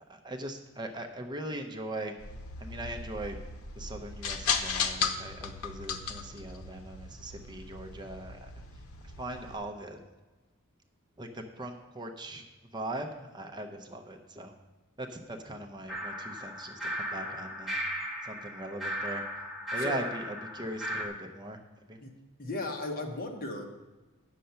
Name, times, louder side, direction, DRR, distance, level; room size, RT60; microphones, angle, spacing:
voice 1, 0.1-2.2 2.6-3.4 3.8-8.5 9.2-10.0 11.2-14.5 15.0-17.8 18.2-19.3 19.7-21.6 21.9-22.0, right 1 dB, 20° right, 4 dB, 0.6 m, -40 dB
sound 1, 2.2-9.6, left 6 dB, 85° left, 0.8 m, -36 dB
sound 2, 15.9-21.1, equal, ahead, 1.3 m, -36 dB
voice 2, 22.0-23.6, left 2 dB, 45° left, 3 dB, 1.1 m, -36 dB
9.0 x 6.6 x 5.6 m, 1.2 s
head